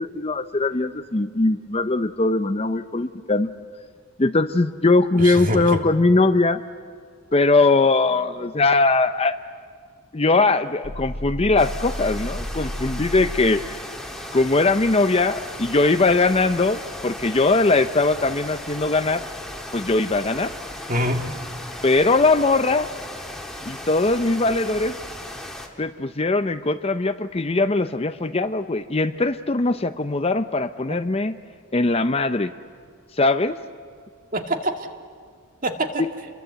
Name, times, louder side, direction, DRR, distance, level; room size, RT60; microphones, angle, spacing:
voice 1, 0.0-3.5 4.2-6.6 7.3-9.4 10.1-13.8 14.3-19.2 19.7-20.5 21.8-22.9 23.7-25.0 25.8-31.3 31.7-32.5 33.1-33.6 36.0-36.1, left 3 dB, 25° left, 10 dB, 0.6 m, -20 dB
voice 2, 5.2-5.8 20.9-21.7 34.3-34.9 35.6-36.0, right 1 dB, 35° right, 5 dB, 2.0 m, -25 dB
sound 1, 10.8-13.6, equal, 75° left, 2.0 m, -32 dB
sound 2, 11.6-25.7, left 1 dB, ahead, 2.0 m, -36 dB
29.5 x 22.5 x 8.2 m, 2.1 s
head